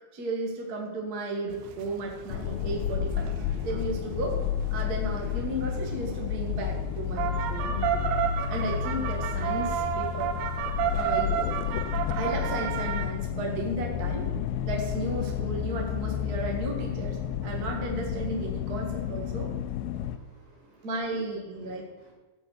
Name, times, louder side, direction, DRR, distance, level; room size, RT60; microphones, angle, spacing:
voice 1, 0.1-3.3 3.6-4.4 4.7-8.0 8.5-10.3 10.9-11.4 12.1-14.3 14.6-19.5 20.8-21.9, right 2 dB, 45° right, 0 dB, 1.2 m, -34 dB
sound 1, 1.5-13.1, right 10 dB, 90° right, 2.8 m, -33 dB
sound 2, 2.3-20.2, left 9 dB, 80° left, 2.2 m, -31 dB
voice 2, 19.9-21.2 21.6-22.1, right 6 dB, 65° right, 0 dB, 3.6 m, -54 dB
15.5 x 5.5 x 6.4 m, 1.2 s
omnidirectional pair, 4.5 m